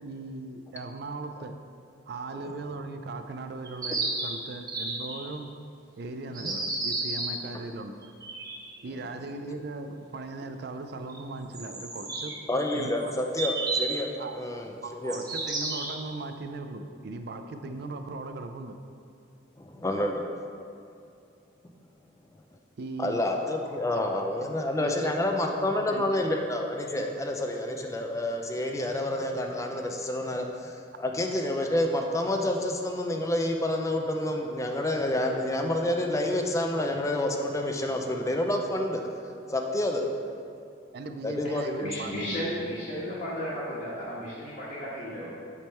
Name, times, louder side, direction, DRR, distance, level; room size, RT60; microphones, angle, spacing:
voice 1, 0.0-1.6 2.1-5.5 6.0-8.1 8.8-12.4 12.7-13.1 14.2-14.4 14.8-18.8 22.8-23.2 23.9-24.0 24.3-24.5 24.8-26.2 26.9-27.1 27.6-27.7 30.2-30.5 40.9-42.1 42.6-42.8, right 3 dB, 55° right, 7 dB, 0.4 m, -39 dB
sound 1, 3.6-5.3 6.3-7.4 8.0-8.7 11.1-11.2 11.5-14.0 15.1-16.2, right 3 dB, 20° right, 0.8 m, -32 dB
voice 2, 12.5-15.2 19.6-20.2 23.0-39.0 39.5-40.1 41.2-41.9, left 1 dB, 15° left, 2 dB, 0.4 m, -28 dB
voice 3, 41.8-45.3, equal, 50° left, -11 dB, 1.4 m, -34 dB
8.3 x 3.5 x 4.4 m, 2.5 s
head